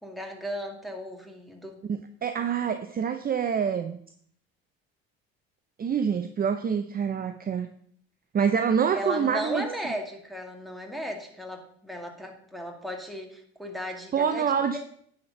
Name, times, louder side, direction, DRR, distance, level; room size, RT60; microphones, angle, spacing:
voice 1, 0.0-1.8 8.9-14.8, equal, ahead, 1 dB, 2.1 m, -36 dB
voice 2, 1.9-4.0 5.8-7.7 8.3-9.7 14.1-14.8, right 7 dB, 30° right, 8 dB, 0.6 m, -26 dB
9.6 x 4.4 x 6.5 m, 0.63 s
hypercardioid pair, 70°, 31 cm